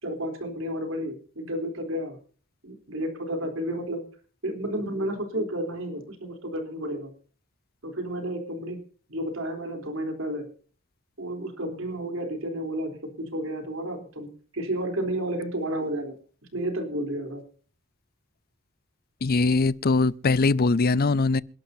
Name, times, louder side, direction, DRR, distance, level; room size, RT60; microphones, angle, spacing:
voice 1, 0.0-2.2 2.6-4.0 4.4-7.1 7.8-8.8 9.1-10.5 11.2-14.3 14.5-16.1 16.5-17.4, right 1 dB, 75° right, 3.6 m, -31 dB
voice 2, 19.2-21.4, left 3 dB, 50° left, 0.5 m, -21 dB
27.5 x 11.5 x 2.7 m
head